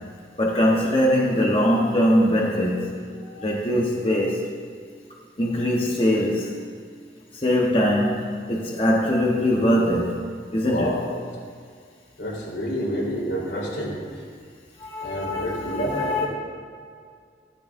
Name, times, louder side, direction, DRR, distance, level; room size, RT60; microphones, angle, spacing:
voice 1, 0.4-2.9 3.3-4.4 5.4-6.6 7.3-10.2 10.5-10.9 14.8-16.3, equal, 30° left, -3 dB, 1.1 m, -22 dB
voice 2, 3.1-3.5 10.6-11.2 12.2-14.2 15.0-16.3, equal, 85° left, -4 dB, 3.7 m, -29 dB
16.5 x 12.5 x 2.6 m, 2.1 s
head